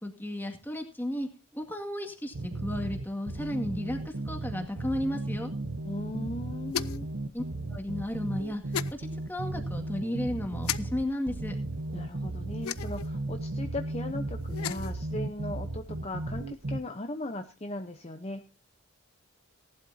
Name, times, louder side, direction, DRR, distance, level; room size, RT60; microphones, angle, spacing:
voice 1, 0.0-5.5 7.3-7.4 7.7-8.6 8.9-11.6, left 1 dB, 10° left, 4 dB, 2.0 m, -34 dB
sound 1, 2.3-16.8, right 2 dB, 60° right, 0.9 m, -35 dB
voice 2, 5.8-7.1 11.9-18.5, left 2 dB, 30° left, 6 dB, 0.8 m, -38 dB
sound 2, 6.7-7.1 8.7-8.9 10.6-10.8 12.6-13.1 14.4-14.9, left 9 dB, 85° left, 0.6 m, -33 dB
18.0 x 11.5 x 2.8 m, 0.32 s
head